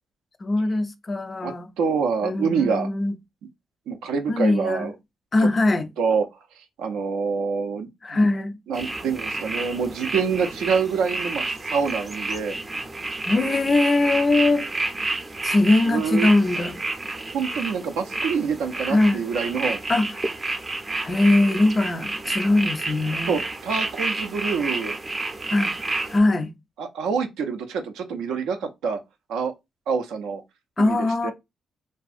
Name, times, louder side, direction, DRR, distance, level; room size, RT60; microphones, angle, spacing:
voice 1, 0.4-1.7 2.2-3.2 4.3-4.9 5.3-5.9 8.0-8.6 13.2-14.7 15.4-16.8 18.9-19.2 19.9-20.1 21.0-23.4 25.5-25.7 26.1-26.5 30.8-31.3, left 2 dB, 40° left, 0.4 m, -21 dB
voice 2, 1.4-2.9 3.9-4.9 6.0-6.3 6.6-8.2 8.7-12.6 15.9-16.3 17.3-19.8 23.3-25.0 26.8-29.0 29.3-29.5 29.9-30.4 30.8-31.3, right 5 dB, 85° right, 0.4 m, -26 dB
sound 1, 8.7-26.2, right 2 dB, 30° right, 0.5 m, -30 dB
2.6 x 2.3 x 2.4 m
supercardioid pair, 65°, 0 cm